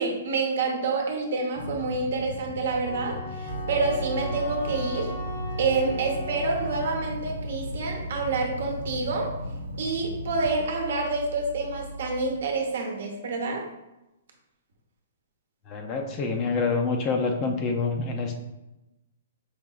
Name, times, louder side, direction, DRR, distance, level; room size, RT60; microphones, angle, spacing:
voice 1, 0.0-5.1 5.6-9.3 9.8-13.6, right 3 dB, 70° right, 1 dB, 0.9 m, -28 dB
sound 1, 1.5-10.5, left 2 dB, 75° left, 1.4 m, -38 dB
Wind instrument woodwind instrument, 2.8-7.1, left 2 dB, 50° left, 0.9 m, -40 dB
sound 2, 3.5-12.3, right 2 dB, 85° right, 0.4 m, -37 dB
voice 2, 15.7-18.4, left 4 dB, 25° left, 4 dB, 0.4 m, -27 dB
4.8 x 2.9 x 2.4 m, 0.97 s
hypercardioid pair, 155°, 0 cm